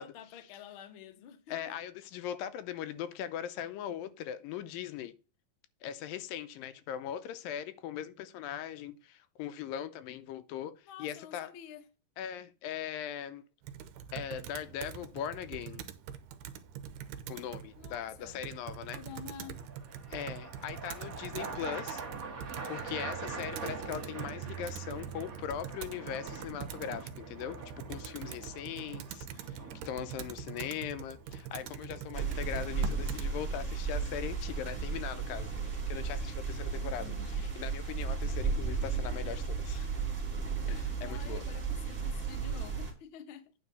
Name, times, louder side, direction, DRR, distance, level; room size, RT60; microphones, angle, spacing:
voice 1, 0.0-1.7 10.8-11.9 17.8-18.4 18.8-19.6 37.0-37.5 41.0-43.5, left 8 dB, 65° left, 1.3 m, -49 dB
voice 2, 1.5-5.1 5.8-10.7 11.0-11.5 12.2-13.4 14.1-15.8 17.3-19.0 20.1-22.0 22.7-29.6 29.9-39.9 40.7-41.4, left 10 dB, 85° left, 2.5 m, -40 dB
Computer keyboard, 13.6-33.3, right 9 dB, 75° right, 2.2 m, -44 dB
sound 1, 14.5-14.9 18.7-33.3, right 4 dB, 45° right, 1.0 m, -45 dB
sound 2, 32.1-42.9, right 5 dB, 20° right, 1.9 m, -34 dB
9.4 x 3.8 x 6.7 m
omnidirectional pair, 4.0 m